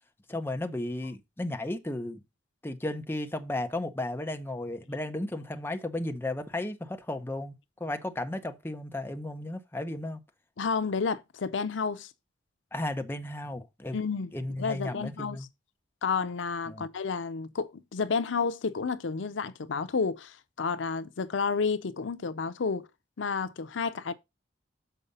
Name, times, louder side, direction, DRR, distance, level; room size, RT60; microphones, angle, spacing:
voice 1, 0.3-2.2 2.6-7.5 7.8-10.2 12.7-14.0 14.3-15.5 16.7-16.9, left 1 dB, 10° left, 0.8 m, -34 dB
voice 2, 10.6-12.1 13.9-14.3 14.6-15.5 16.0-22.9 23.2-24.1, left 5 dB, 85° left, 0.6 m, -31 dB
6.9 x 4.9 x 5.4 m
head